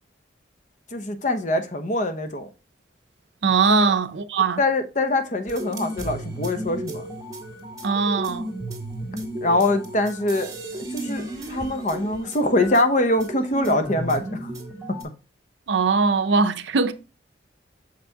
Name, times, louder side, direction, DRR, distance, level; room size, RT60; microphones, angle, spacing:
voice 1, 0.9-2.5 3.7-3.9 4.6-7.0 9.4-10.5 10.9-14.5, left 1 dB, 40° left, 0.8 m, -23 dB
voice 2, 3.4-4.6 7.8-8.5 15.7-16.9, right 4 dB, 75° right, 0.6 m, -21 dB
sound 1, 5.5-15.0, right 1 dB, 20° right, 1.9 m, -34 dB
6.6 x 5.6 x 2.8 m
head